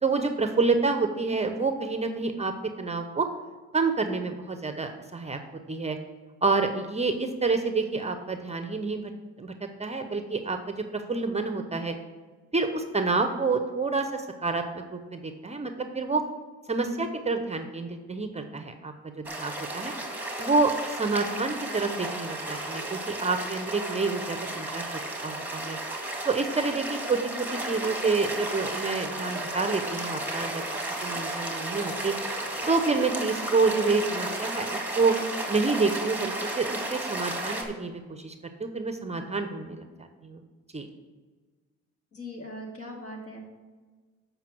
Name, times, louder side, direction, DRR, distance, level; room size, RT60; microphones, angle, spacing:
voice 1, 0.0-3.3 3.7-5.4 5.7-6.0 6.4-9.1 9.4-9.5 9.8-11.9 12.5-16.2 16.7-19.9 20.4-24.9 25.2-25.8 26.3-30.6 31.0-32.1 32.7-35.2 35.5-38.3 38.6-39.8 40.2-40.4 40.7-40.9, right 4 dB, 20° right, 7 dB, 0.7 m, -28 dB
sound 1, 19.2-37.6, right 1 dB, 5° right, 1.7 m, -33 dB
voice 2, 42.1-43.4, left 1 dB, 50° left, 0 dB, 2.3 m, -40 dB
7.4 x 5.4 x 5.9 m, 1.4 s
cardioid pair, 90°, 30 cm